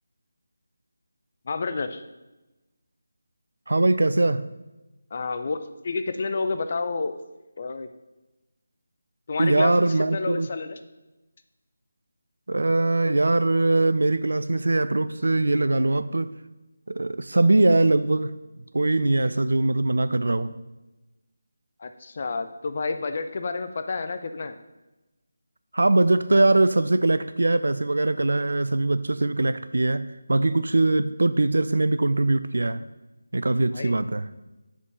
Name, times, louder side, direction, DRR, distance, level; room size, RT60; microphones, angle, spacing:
voice 1, 1.4-2.0 5.1-5.6 5.8-7.1 7.6-7.9 9.3-10.8 21.8-24.5 33.7-33.9, left 4 dB, 35° left, 0.5 m, -29 dB
voice 2, 3.7-4.4 9.4-10.5 12.5-16.3 16.9-18.3 18.7-20.5 25.7-32.8 33.3-34.3, right 2 dB, 60° right, 0.4 m, -22 dB
6.4 x 5.2 x 5.7 m
figure-of-eight pair, 155°, 0 cm